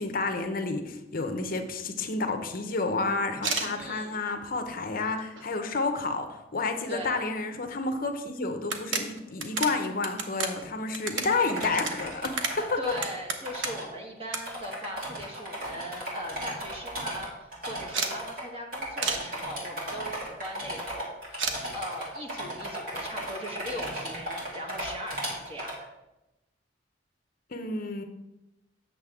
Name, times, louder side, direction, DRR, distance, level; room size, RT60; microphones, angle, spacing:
voice 1, 0.0-12.8 27.5-28.0, left 3 dB, 50° left, 6 dB, 0.7 m, -30 dB
sound 1, 3.3-3.7 4.4-4.5 5.0-5.7 6.0-6.1 6.4-6.5 7.8-7.9 8.2-8.3 8.6-13.9 14.3-14.4 14.7-15.5 15.8-15.9 16.2-16.3 16.5-16.9 17.9-18.2 19.0-19.3 21.4-21.6, right 4 dB, 90° right, 0.9 m, -32 dB
voice 2, 3.7-4.2 6.9-7.2 12.8-21.4 21.7-25.9, equal, 30° right, 0 dB, 1.4 m, -39 dB
sound 2, 11.4-13.1 13.4-13.8 14.2-14.3 14.4-18.4 18.7-25.7, right 1 dB, 50° right, 2.4 m, -36 dB
8.5 x 6.6 x 3.6 m, 0.96 s
head